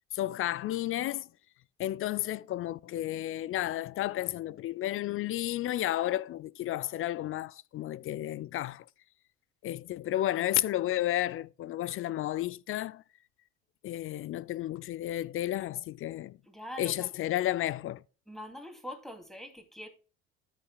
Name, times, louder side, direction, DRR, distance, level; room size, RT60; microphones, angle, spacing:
voice 1, 0.1-1.3 1.8-8.8 9.6-13.0 13.8-16.4 16.8-18.0, left 14 dB, 35° left, 0.4 m, -32 dB
voice 2, 16.5-17.1 18.3-19.9, equal, ahead, 2.5 m, -43 dB
13.5 x 5.7 x 2.3 m
hypercardioid pair, 65°, 39 cm